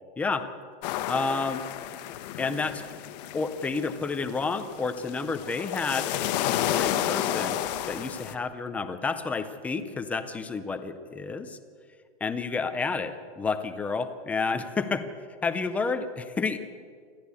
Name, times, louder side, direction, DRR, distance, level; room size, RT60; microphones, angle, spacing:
voice 1, 0.2-0.5 1.1-1.7 2.4-2.8 3.3-6.1 6.7-7.6 7.9-11.6 12.2-15.0 15.4-16.6, left 4 dB, 5° left, 9 dB, 0.4 m, -30 dB
sound 1, 0.8-8.3, left 12 dB, 40° left, 1.2 m, -31 dB
26.5 x 13.5 x 8.3 m, 2.1 s
hypercardioid pair, 155°, 34 cm